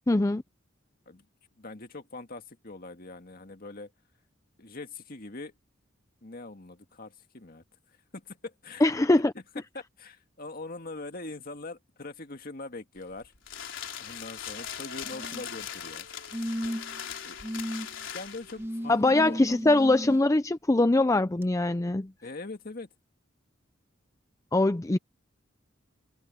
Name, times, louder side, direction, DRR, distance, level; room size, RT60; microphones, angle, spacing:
voice 1, 0.1-0.4 8.8-9.3 18.9-22.1 24.5-25.0, left 2 dB, 15° left, 0.4 m, -22 dB
voice 2, 1.5-3.9 4.6-5.5 6.2-8.9 9.3-9.4 9.7-13.3 14.0-16.1 17.2-17.4 18.0-19.6 22.2-22.9, left 2 dB, 45° left, 2.0 m, -42 dB
sound 1, 13.0-18.7, left 9 dB, 65° left, 4.6 m, -40 dB
Singing, 14.5-19.8, right 2 dB, 65° right, 4.5 m, -56 dB
sound 2, 15.0-15.6 16.3-17.0 17.4-17.9 18.6-20.2 21.4-21.5, equal, 10° right, 1.4 m, -35 dB
head